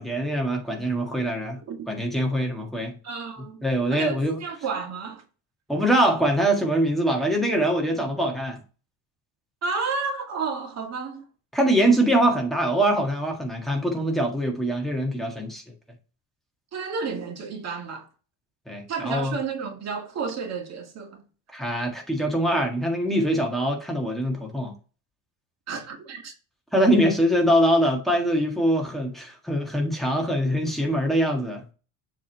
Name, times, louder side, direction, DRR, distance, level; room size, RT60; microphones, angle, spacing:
voice 1, 0.0-1.6 1.9-2.9 3.6-4.4 5.7-8.6 11.5-15.6 18.7-19.4 21.5-24.7 26.7-31.6, right 1 dB, ahead, 1.5 m, -23 dB
voice 2, 3.0-3.6 3.9-5.2 9.6-11.2 16.7-18.1 18.9-21.2 25.7-26.3, right 5 dB, 40° right, 1.8 m, -31 dB
7.4 x 3.6 x 4.5 m
cardioid pair, 145°, 39 cm